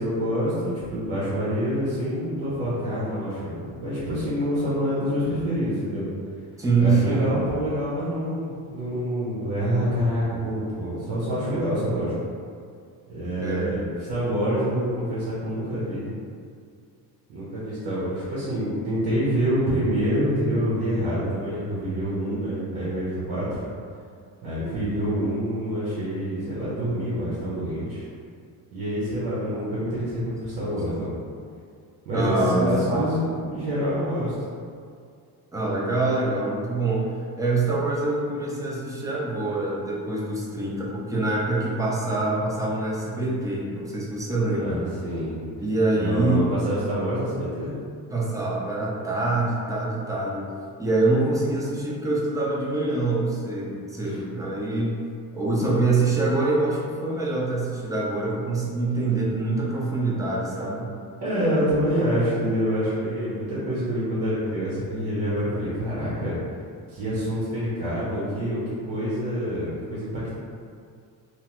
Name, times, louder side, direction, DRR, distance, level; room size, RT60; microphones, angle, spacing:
voice 1, 0.0-6.0 6.8-12.1 13.1-16.1 17.3-23.6 24.4-28.0 28.7-31.1 32.1-34.3 44.5-45.4 46.0-47.7 54.0-54.2 61.2-66.3 66.9-68.6 68.9-70.3, equal, 85° right, -9 dB, 0.9 m, -26 dB
voice 2, 6.6-7.3 13.4-13.8 30.9-31.0 32.1-33.4 34.0-34.2 35.5-37.1 37.4-44.8 45.6-46.5 48.1-50.4 50.8-55.0 55.3-60.9, right 2 dB, 10° right, -5 dB, 0.5 m, -25 dB
2.8 x 2.1 x 3.0 m, 2.3 s
cardioid pair, 120°, 38 cm